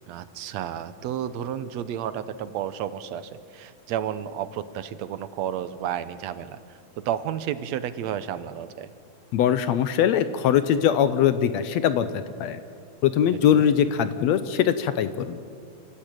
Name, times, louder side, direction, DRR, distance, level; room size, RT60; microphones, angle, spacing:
voice 1, 0.1-8.9 13.5-13.7, right 10 dB, 75° right, 13 dB, 1.8 m, -32 dB
voice 2, 9.3-12.6 13.0-15.4, left 9 dB, 70° left, 12 dB, 1.8 m, -22 dB
28.0 x 15.5 x 9.1 m, 2.4 s
omnidirectional pair, 3.6 m